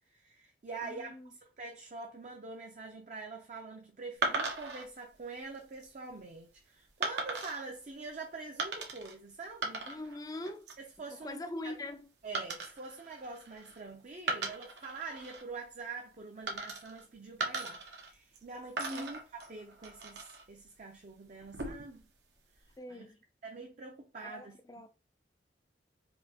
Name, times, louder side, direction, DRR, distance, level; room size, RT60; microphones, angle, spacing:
voice 1, 0.1-9.9 10.8-11.8 12.2-22.1 22.9-23.1 23.4-24.6, right 3 dB, 45° right, 0.5 m, -45 dB
voice 2, 0.8-1.3 9.9-10.7 11.2-12.1 18.9-19.1 22.8-23.2 24.2-24.9, left 1 dB, 20° left, 0.4 m, -42 dB
sound 1, 4.2-4.8 5.5-5.9 7.0-7.6 8.6-9.1 9.4-10.2 10.5-10.9 12.3-13.8 14.2-15.4 16.5-17.0 17.4-18.4 18.8-20.4 21.4-22.0, right 3 dB, 80° right, 0.9 m, -38 dB
4.2 x 2.8 x 2.8 m
head